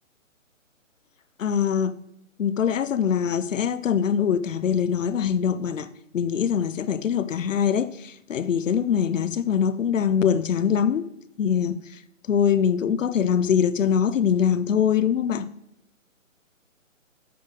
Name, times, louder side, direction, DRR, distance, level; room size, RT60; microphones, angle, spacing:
voice 1, 1.4-1.9 2.4-5.9 6.1-11.1 11.4-11.8 12.3-15.5, left 8 dB, 70° left, 0.6 m, -23 dB
9.3 x 3.9 x 3.8 m
hypercardioid pair, 150°, 40 cm